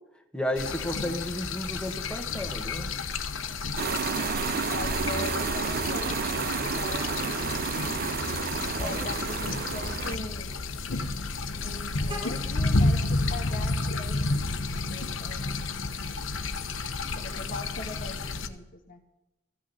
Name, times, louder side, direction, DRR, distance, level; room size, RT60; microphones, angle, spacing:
voice 1, 0.3-2.9 8.8-9.0, left 1 dB, 5° left, 3 dB, 1.5 m, -33 dB
sound 1, 0.6-18.5, left 3 dB, 80° left, 1.0 m, -31 dB
sound 2, 3.8-10.2, right 6 dB, 50° right, 0.5 m, -31 dB
voice 2, 4.7-8.2 8.8-10.5 11.6-15.7 17.0-19.0, left 2 dB, 45° left, 5 dB, 1.3 m, -41 dB
Vehicle horn car horn honking, 9.1-14.3, equal, 25° right, 2.0 m, -47 dB
14.5 x 6.3 x 9.9 m, 0.98 s
head